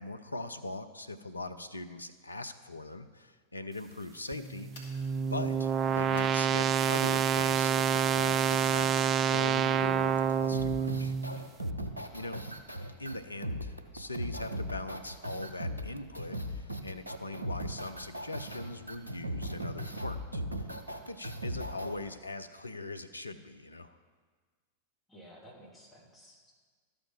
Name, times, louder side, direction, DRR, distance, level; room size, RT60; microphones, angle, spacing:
voice 1, 0.0-4.7 5.3-11.1 12.1-12.4 13.0-20.7 21.1-24.0, left 2 dB, 80° left, 9 dB, 0.5 m, -41 dB
sound 1, 4.3-11.4, right 7 dB, 25° right, 0.3 m, -28 dB
sound 2, 4.7-5.0 6.1-6.4 8.5-9.2, left 1 dB, 60° left, 2.7 m, -51 dB
sound 3, 10.5-21.9, equal, 85° right, 0.7 m, -38 dB
voice 2, 25.1-26.6, equal, 15° left, -4 dB, 2.6 m, -54 dB
13.0 x 5.1 x 5.9 m, 1.5 s
figure-of-eight pair, 90°, 0 cm